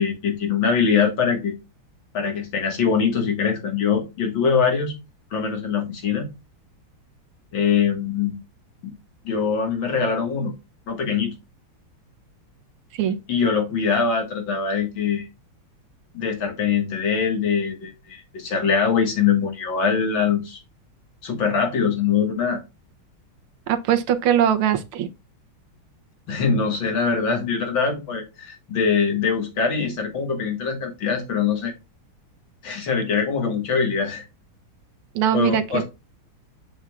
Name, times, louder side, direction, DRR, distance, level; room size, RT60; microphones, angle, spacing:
voice 1, 0.0-1.5 2.1-4.9 5.3-6.3 7.5-8.4 8.8-8.9 9.2-10.5 10.9-11.3 13.3-15.3 16.1-20.6 21.2-22.6 26.3-31.7 32.6-34.2 35.3-35.8, left 6 dB, 65° left, 2.4 m, -23 dB
voice 2, 23.7-25.1 35.2-35.8, right 9 dB, 85° right, 1.8 m, -21 dB
7.7 x 7.0 x 2.4 m
omnidirectional pair, 2.3 m